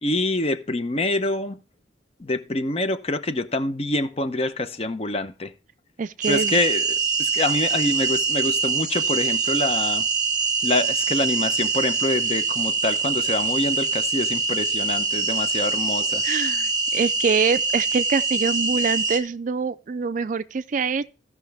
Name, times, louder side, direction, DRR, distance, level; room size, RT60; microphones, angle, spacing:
voice 1, 0.0-1.6 2.2-5.5 6.3-10.1 10.6-16.2, left 2 dB, 35° left, 0.7 m, -26 dB
voice 2, 6.0-6.6 16.2-21.1, right 5 dB, 45° right, 0.4 m, -25 dB
sound 1, 6.2-19.2, right 4 dB, 20° right, 1.3 m, -24 dB
15.0 x 5.8 x 3.3 m
head